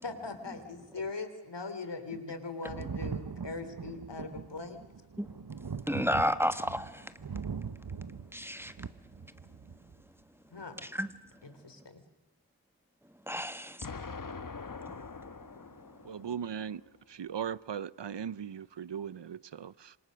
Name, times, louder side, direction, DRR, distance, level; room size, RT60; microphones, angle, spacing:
voice 1, 0.0-4.8 10.5-10.9 11.4-12.0, left 3 dB, 70° left, 3.0 m, -40 dB
Thunder, 2.7-10.0 11.1-11.2, right 6 dB, 55° right, 1.1 m, -41 dB
voice 2, 5.9-7.1 8.3-8.7 10.9-11.1 13.3-13.9, equal, 5° right, 1.4 m, -31 dB
Explosion, 13.8-16.8, left 4 dB, 45° left, 1.2 m, -43 dB
voice 3, 16.0-16.8 17.1-20.0, right 8 dB, 75° right, 0.7 m, -38 dB
27.0 x 26.0 x 6.3 m
wide cardioid pair, 55°, 43 cm